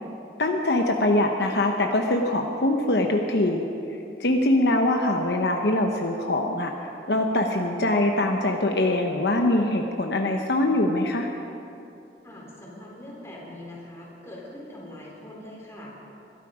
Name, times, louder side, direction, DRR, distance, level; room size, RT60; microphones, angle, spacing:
voice 1, 0.4-3.6 4.2-6.7 7.1-11.3, left 1 dB, 65° left, 2 dB, 1.0 m, -23 dB
voice 2, 12.2-15.9, left 1 dB, 15° left, -4 dB, 3.9 m, -42 dB
22.0 x 12.5 x 5.0 m, 2.8 s
head